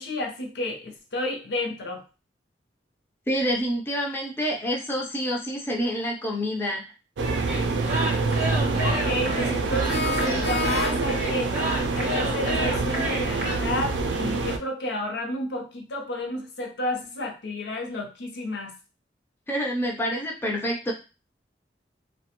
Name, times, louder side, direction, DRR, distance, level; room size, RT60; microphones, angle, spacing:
voice 1, 0.0-2.0 8.8-11.6 11.9-18.7, left 1 dB, 75° left, 1 dB, 0.6 m, -31 dB
voice 2, 3.3-6.8 19.5-20.9, equal, 10° left, -2 dB, 0.4 m, -27 dB
sound 1, 7.2-14.6, right 3 dB, 90° right, 0.4 m, -26 dB
sound 2, 7.5-13.6, right 1 dB, 40° right, 0.6 m, -31 dB
sound 3, 9.9-11.3, left 2 dB, 90° left, 1.0 m, -30 dB
2.3 x 2.1 x 2.8 m, 0.31 s
head